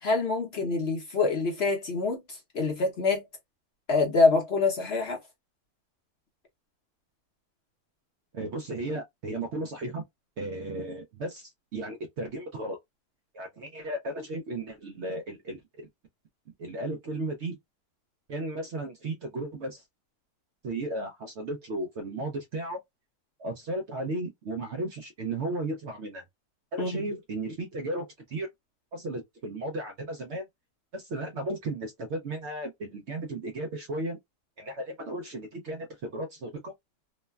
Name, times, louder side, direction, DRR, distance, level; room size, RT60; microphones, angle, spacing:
voice 1, 0.0-3.2 3.9-5.2 26.8-27.1, left 3 dB, 55° left, 0.8 m, -26 dB
voice 2, 8.3-10.0 10.4-12.8 13.3-15.9 16.6-17.6 18.3-19.8 20.6-22.8 23.4-26.2 26.7-28.5 28.9-30.5 30.9-34.2 34.6-36.7, right 2 dB, 65° right, 0.7 m, -35 dB
3.0 x 2.1 x 2.2 m
omnidirectional pair, 1.6 m